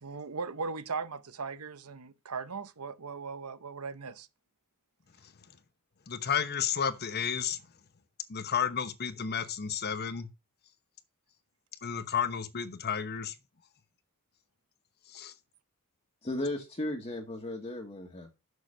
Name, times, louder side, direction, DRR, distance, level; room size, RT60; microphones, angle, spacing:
voice 1, 0.0-4.3, right 4 dB, 85° right, 0.9 m, -38 dB
voice 2, 6.1-7.6 8.3-10.3 11.8-13.3 15.1-15.3, left 7 dB, 45° left, 0.9 m, -32 dB
voice 3, 16.2-18.3, left 1 dB, 30° left, 1.3 m, -35 dB
6.6 x 6.5 x 6.3 m
head